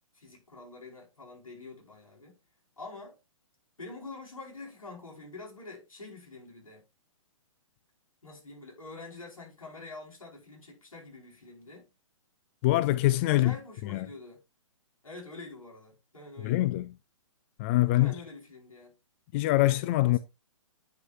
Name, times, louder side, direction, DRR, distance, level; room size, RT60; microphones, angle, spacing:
voice 1, 0.0-2.4 2.8-3.2 3.8-6.8 8.2-11.9 13.3-14.4 15.0-16.7 17.8-18.9 20.0-20.2, left 3 dB, 80° left, 5.2 m, -46 dB
voice 2, 12.6-13.6 13.8-14.1 16.4-16.9 17.6-18.1 19.3-20.2, left 17 dB, 25° left, 0.3 m, -24 dB
9.6 x 6.1 x 2.6 m
figure-of-eight pair, 130°, 17 cm